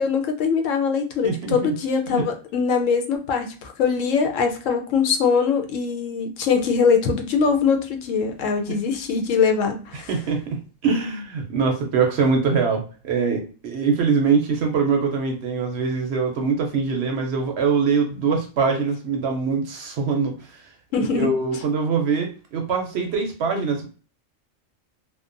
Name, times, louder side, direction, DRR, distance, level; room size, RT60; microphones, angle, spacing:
voice 1, 0.0-10.1 20.9-21.3, left 5 dB, 80° left, 5 dB, 0.9 m, -22 dB
voice 2, 1.2-1.5 2.1-2.3 8.7-8.8 10.1-20.6 21.1-23.9, right 5 dB, 65° right, 3 dB, 0.8 m, -23 dB
2.8 x 2.1 x 2.4 m, 0.37 s
omnidirectional pair, 1.3 m